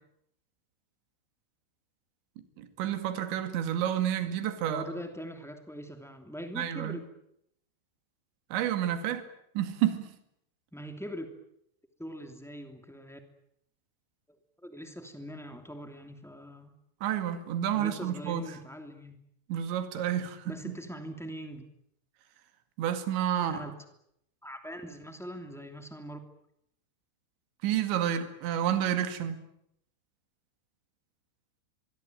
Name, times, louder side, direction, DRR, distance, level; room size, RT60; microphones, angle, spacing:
voice 1, 2.6-4.9 6.6-7.0 8.5-9.3 9.6-10.1 17.0-18.4 19.5-20.7 22.8-23.6 27.6-29.5, right 10 dB, 70° right, 4.3 m, -30 dB
voice 2, 4.7-7.0 10.7-11.3 12.0-13.2 14.6-16.7 17.7-19.2 20.4-21.6 23.5-23.7 24.4-26.2, equal, ahead, 1.2 m, -42 dB
24.5 x 23.0 x 9.2 m
omnidirectional pair, 5.5 m